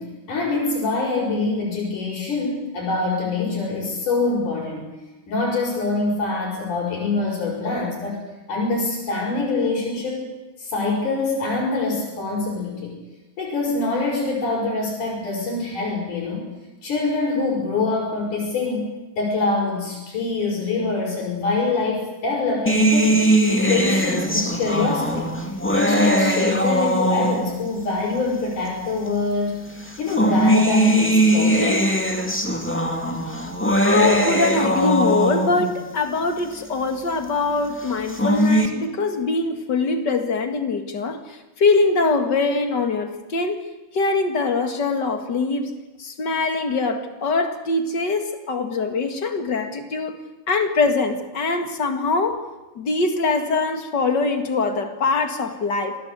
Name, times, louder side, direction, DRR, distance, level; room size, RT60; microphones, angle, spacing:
voice 1, 0.0-4.9 5.3-10.3 10.6-13.0 13.4-16.5 16.8-18.9 19.2-23.2 23.7-25.3 25.7-29.6 30.0-31.9, left 3 dB, 70° left, -7 dB, 7.2 m, -24 dB
sound 1, 22.7-27.7 28.7-28.8 29.9-35.8 37.9-38.7, right 1 dB, 5° left, 1.4 m, -20 dB
voice 2, 33.8-50.2 50.5-52.4 52.8-56.0, left 3 dB, 35° left, 6 dB, 2.3 m, -23 dB
26.5 x 19.0 x 8.3 m, 1.1 s
omnidirectional pair, 3.7 m